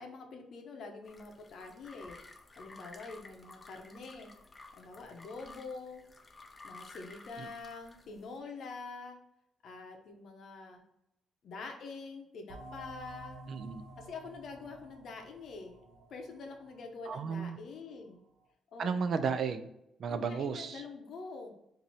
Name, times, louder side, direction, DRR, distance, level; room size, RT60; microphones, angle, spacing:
voice 1, 0.0-2.2 2.6-4.3 4.8-6.0 6.6-9.2 9.6-10.8 11.4-13.4 14.0-15.8 16.1-18.2 18.7-18.9 20.1-21.5, left 4 dB, 55° left, 3 dB, 0.8 m, -45 dB
sound 1, 1.0-8.4, left 3 dB, 20° left, 0.5 m, -54 dB
sound 2, 12.5-17.8, right 2 dB, 80° right, 0.8 m, -51 dB
voice 2, 13.5-13.8 17.1-17.6 18.8-19.7 20.0-20.8, right 6 dB, 50° right, 10 dB, 0.4 m, -33 dB
4.1 x 2.7 x 3.0 m, 0.82 s
cardioid pair, 150°, 0 cm